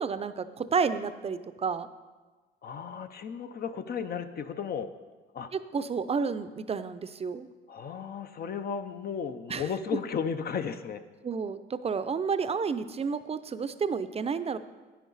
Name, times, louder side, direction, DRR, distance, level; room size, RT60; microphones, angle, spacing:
voice 1, 0.0-1.9 5.5-7.5 9.5-9.7 11.2-14.6, right 5 dB, 30° right, 12 dB, 0.5 m, -31 dB
voice 2, 2.6-4.9 5.3-5.5 7.7-11.0, left 6 dB, 50° left, 9 dB, 0.6 m, -34 dB
10.5 x 9.2 x 4.0 m, 1.3 s
cardioid pair, 90°, 20 cm